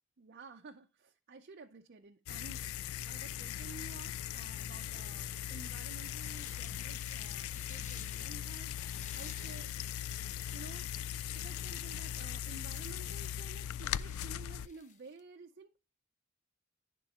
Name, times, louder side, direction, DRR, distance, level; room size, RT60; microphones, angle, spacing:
voice 1, 0.2-9.9 10.5-10.9 11.3-15.8, right 4 dB, 50° right, 4 dB, 0.5 m, -53 dB
sound 1, 2.3-14.7, left 10 dB, 90° left, 0.3 m, -39 dB
sound 2, 5.7-15.2, left 6 dB, 35° left, 0.8 m, -57 dB
11.0 x 3.8 x 4.1 m, 0.31 s
head